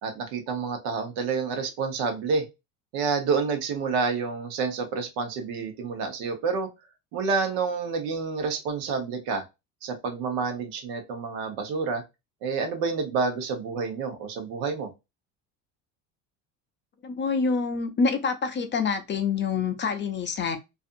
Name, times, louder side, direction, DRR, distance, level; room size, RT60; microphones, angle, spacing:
voice 1, 0.0-2.4 2.9-6.7 7.1-9.4 9.8-12.0 12.4-14.9, right 5 dB, 80° right, 1.0 m, -28 dB
voice 2, 17.0-20.6, left 5 dB, 30° left, 0.5 m, -26 dB
2.6 x 2.5 x 2.5 m
supercardioid pair, 100°, 39 cm